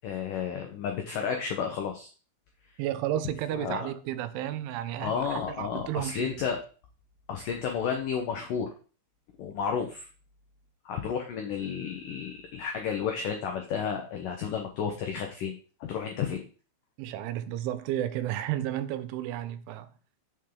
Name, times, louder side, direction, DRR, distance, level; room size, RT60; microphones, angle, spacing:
voice 1, 0.0-2.1 3.5-3.9 5.0-6.6 7.3-8.7 9.4-10.1 10.9-15.6 15.9-16.4, left 7 dB, 90° left, 1.8 m, -32 dB
voice 2, 2.8-6.3 17.0-19.9, right 12 dB, 90° right, 3.2 m, -32 dB
8.7 x 7.4 x 3.9 m
omnidirectional pair, 5.3 m